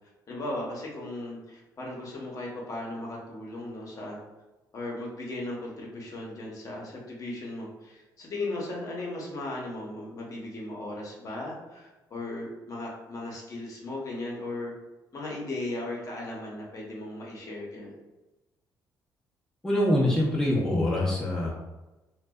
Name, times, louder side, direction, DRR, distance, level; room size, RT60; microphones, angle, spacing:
voice 1, 0.3-4.2 4.7-14.7 15.1-18.0, left 2 dB, 45° left, -3 dB, 0.8 m, -37 dB
voice 2, 19.6-21.5, left 1 dB, 10° left, -5 dB, 0.6 m, -24 dB
2.5 x 2.1 x 2.2 m, 1.1 s
cardioid pair, 80°, 8 cm